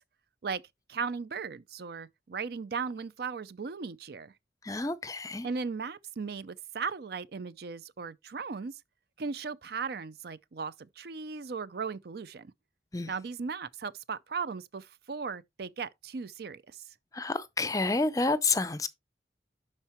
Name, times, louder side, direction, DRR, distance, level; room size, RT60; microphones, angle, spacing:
voice 1, 0.9-4.3 5.4-8.7 9.2-12.5 13.1-16.8, right 5 dB, 60° right, 0.5 m, -37 dB
voice 2, 4.6-5.5 12.9-13.1 17.1-18.9, left 3 dB, 20° left, 0.5 m, -29 dB
11.5 x 4.4 x 3.0 m
head